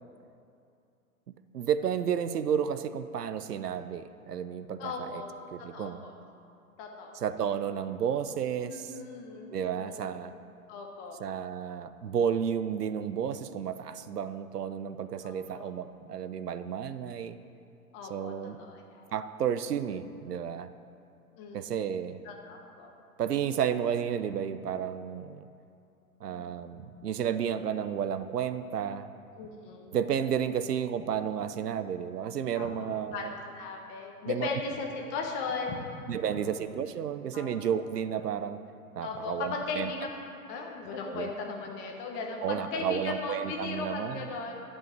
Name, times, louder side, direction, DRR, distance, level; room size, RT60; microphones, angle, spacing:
voice 1, 1.5-5.2 5.5-6.0 7.1-8.9 9.5-10.3 11.2-17.4 18.1-18.6 19.1-20.7 21.5-22.2 23.2-25.5 26.2-29.1 29.9-33.3 34.3-34.5 36.1-38.6 39.0-39.9 41.0-41.3 42.4-44.2, right 8 dB, 90° right, 12 dB, 0.7 m, -32 dB
voice 2, 4.8-5.3 5.7-6.1 6.8-7.1 8.7-10.1 10.7-11.2 15.2-15.7 17.9-19.1 21.4-21.9 22.2-22.9 26.3-26.8 29.4-30.0 32.6-32.7 33.1-35.9 37.3-37.5 39.0-40.2 40.5-44.7, left 4 dB, 25° left, 1 dB, 1.0 m, -37 dB
11.0 x 5.6 x 7.4 m, 2.6 s
hypercardioid pair, 135°, 46 cm